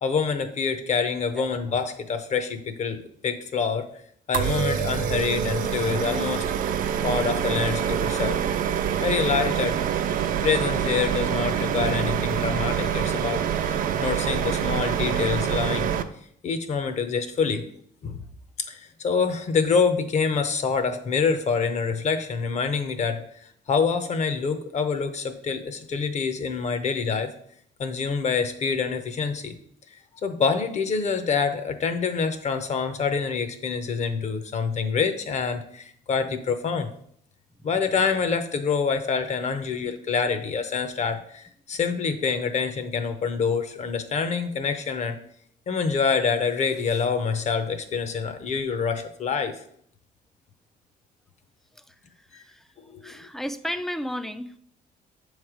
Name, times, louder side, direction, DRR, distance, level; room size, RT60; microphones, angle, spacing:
voice 1, 0.0-3.9 4.3-6.4 7.0-8.4 9.0-9.8 10.4-15.9 16.4-17.6 18.0-18.2 18.7-27.3 27.8-29.6 30.2-36.9 37.6-45.2 45.7-49.6, left 5 dB, 45° left, 9 dB, 0.7 m, -26 dB
sound 1, 4.3-16.0, right 9 dB, 55° right, 0.5 m, -26 dB
voice 2, 51.7-52.7 53.0-54.6, equal, ahead, 11 dB, 0.3 m, -34 dB
7.0 x 3.3 x 4.9 m, 0.66 s
cardioid pair, 110°, 17 cm